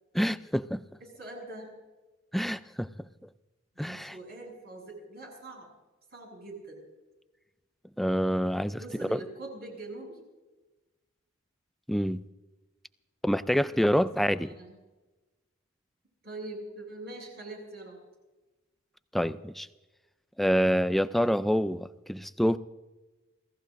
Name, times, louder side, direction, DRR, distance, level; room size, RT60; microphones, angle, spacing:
voice 1, 0.1-0.8 2.3-3.1 3.8-4.1 8.0-9.2 11.9-12.3 13.2-14.5 19.1-19.7 20.4-22.6, equal, ahead, 13 dB, 0.4 m, -27 dB
voice 2, 1.0-1.7 3.8-5.7 6.1-6.8 8.7-10.2 13.7-13.8 14.2-14.8 16.2-18.0, right 2 dB, 50° right, -1 dB, 7.1 m, -43 dB
27.0 x 16.5 x 2.6 m, 1.2 s
head